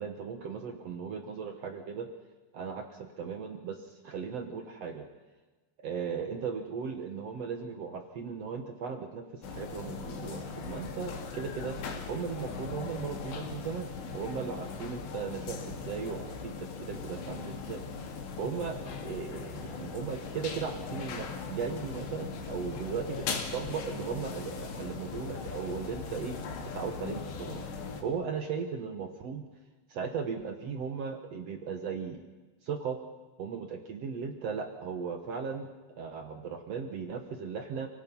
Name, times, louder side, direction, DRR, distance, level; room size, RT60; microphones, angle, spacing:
voice 1, 0.0-2.1 2.5-5.1 5.8-11.7 12.1-17.8 18.4-23.3 23.5-26.4 26.6-27.6 28.0-29.4 29.9-32.2 32.6-33.0 33.4-35.7 36.0-37.9, right 6 dB, 70° right, 5 dB, 1.5 m, -37 dB
sound 1, 9.4-28.0, left 5 dB, 85° left, 4.4 m, -39 dB
30.0 x 18.0 x 5.5 m, 1.2 s
omnidirectional pair, 4.9 m